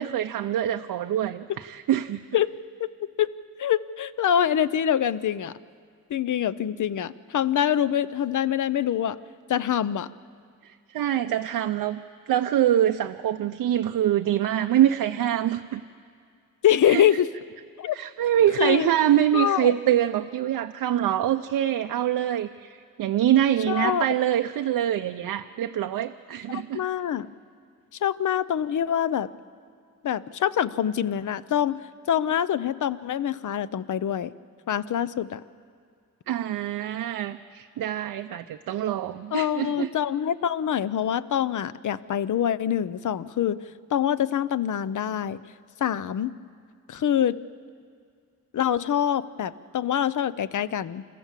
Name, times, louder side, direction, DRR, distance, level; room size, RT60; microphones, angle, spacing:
voice 1, 0.0-2.2 10.6-12.0 12.3-15.8 16.9-17.0 17.9-26.8 36.3-39.9, right 11 dB, 85° right, 6 dB, 0.6 m, -25 dB
voice 2, 3.6-5.5 6.1-9.2 9.5-10.1 16.6-17.3 17.8-18.0 18.6-18.9 19.3-19.7 23.7-24.1 26.5-27.3 28.0-29.3 30.0-31.8 32.1-34.3 34.7-35.4 39.3-43.6 43.9-45.5 45.8-46.3 46.9-47.4 48.5-51.1, left 10 dB, 60° left, 16 dB, 0.7 m, -25 dB
29.0 x 14.5 x 7.4 m, 2.2 s
cardioid pair, 95°, 34 cm